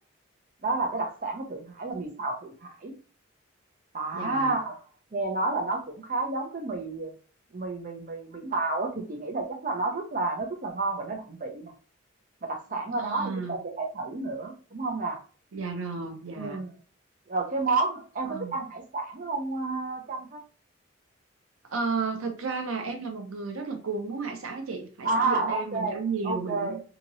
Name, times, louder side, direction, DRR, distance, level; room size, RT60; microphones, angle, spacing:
voice 1, 0.6-2.9 3.9-4.8 5.1-7.1 7.5-11.7 12.4-15.2 16.3-16.7 17.3-20.4 25.0-26.0 26.2-26.8, right 3 dB, 40° right, 0.5 m, -30 dB
voice 2, 4.1-4.6 12.9-13.6 15.5-16.6 18.2-18.5 21.7-26.8, right 4 dB, 90° right, 0.7 m, -33 dB
2.9 x 2.8 x 2.6 m
head